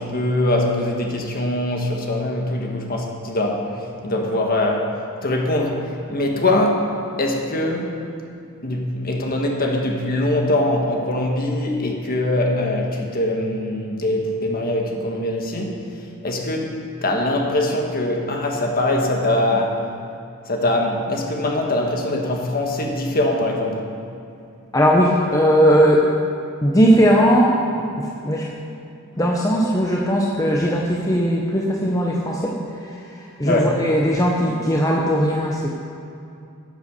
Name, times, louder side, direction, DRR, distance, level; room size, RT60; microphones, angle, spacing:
voice 1, 0.0-4.9 5.2-5.8 6.1-6.9 7.2-7.9 8.6-15.8 16.2-16.7 17.0-19.8 20.5-23.9 33.4-33.8, left 1 dB, 40° left, 1 dB, 1.4 m, -22 dB
voice 2, 24.7-26.1 26.6-28.5 29.2-35.7, equal, 15° left, -2 dB, 0.8 m, -18 dB
10.5 x 8.1 x 6.6 m, 2.5 s
head